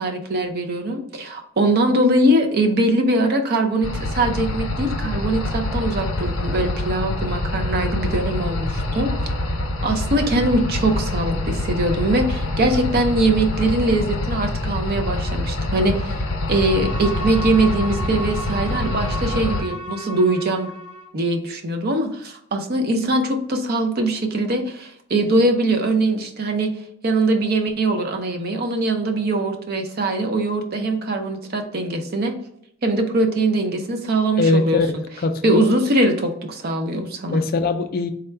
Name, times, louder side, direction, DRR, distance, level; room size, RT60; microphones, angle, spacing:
voice 1, 0.0-9.1 9.8-20.7 21.1-26.7 27.0-32.3 32.8-34.8 35.4-37.4, right 2 dB, 45° right, 4 dB, 0.5 m, -22 dB
sound 1, 3.8-19.6, left 2 dB, 70° left, 0.8 m, -25 dB
Bowed string instrument, 16.4-21.2, left 1 dB, 20° right, 0.9 m, -34 dB
voice 2, 34.4-35.8 37.3-38.1, left 3 dB, 40° left, 7 dB, 0.3 m, -21 dB
3.6 x 2.2 x 4.4 m, 0.71 s
head